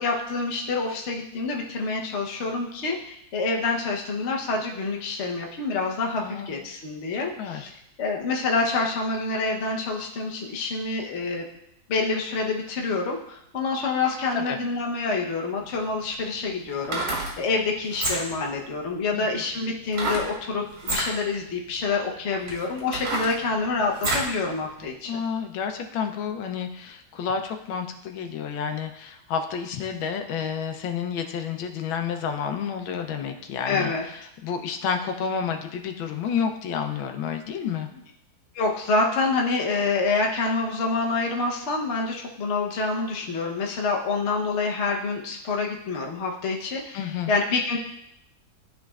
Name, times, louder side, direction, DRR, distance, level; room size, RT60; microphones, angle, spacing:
voice 1, 0.0-7.7 8.0-11.5 11.9-25.2 33.7-34.0 38.5-47.8, left 3 dB, 45° left, 1 dB, 1.0 m, -27 dB
voice 2, 6.2-6.6 7.4-7.7 14.3-14.6 19.1-19.3 25.0-37.9 46.9-47.3, left 7 dB, 85° left, 6 dB, 1.5 m, -30 dB
sound 1, 15.6-15.7 16.7-17.3 17.9-18.4 19.9-20.3 20.8-21.1 21.8-21.9 22.5-24.3 24.8-24.9, right 2 dB, 75° right, 2.2 m, -28 dB
12.5 x 4.3 x 2.4 m, 0.76 s
omnidirectional pair, 2.1 m